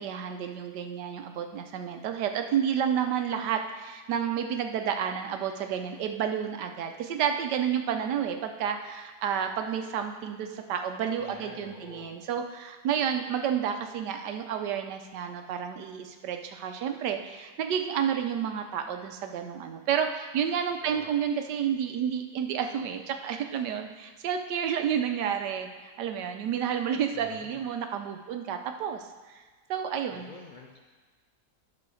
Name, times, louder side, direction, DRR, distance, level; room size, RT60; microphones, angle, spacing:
voice 1, 0.0-29.4 29.7-30.3, right 8 dB, 80° right, 6 dB, 1.3 m, -30 dB
voice 2, 11.2-12.1 20.8-21.1 27.1-27.7 30.1-30.8, left 4 dB, 80° left, 1 dB, 0.4 m, -47 dB
11.0 x 4.1 x 6.2 m, 1.4 s
omnidirectional pair, 1.8 m